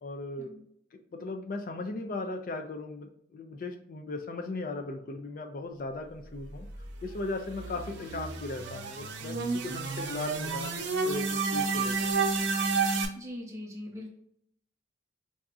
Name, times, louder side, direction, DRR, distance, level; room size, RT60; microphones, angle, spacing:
voice 1, 0.0-0.5 0.9-6.7 7.0-12.1, left 2 dB, 50° left, 5 dB, 0.4 m, -37 dB
sound 1, 6.7-13.1, right 4 dB, 75° right, 0.6 m, -31 dB
voice 2, 13.1-14.1, left 1 dB, 15° right, -2 dB, 0.8 m, -41 dB
4.7 x 2.7 x 2.3 m, 0.69 s
head